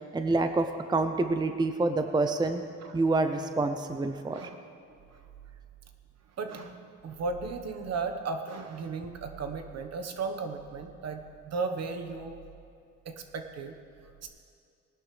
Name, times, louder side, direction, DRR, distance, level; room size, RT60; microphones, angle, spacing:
voice 1, 0.1-2.6 2.9-4.4, right 3 dB, 15° right, 8 dB, 0.6 m, -27 dB
voice 2, 6.4-12.4 13.0-13.7 14.2-14.3, right 4 dB, 60° right, 6 dB, 1.2 m, -35 dB
19.5 x 11.5 x 3.3 m, 2.4 s
cardioid pair, 90°, 30 cm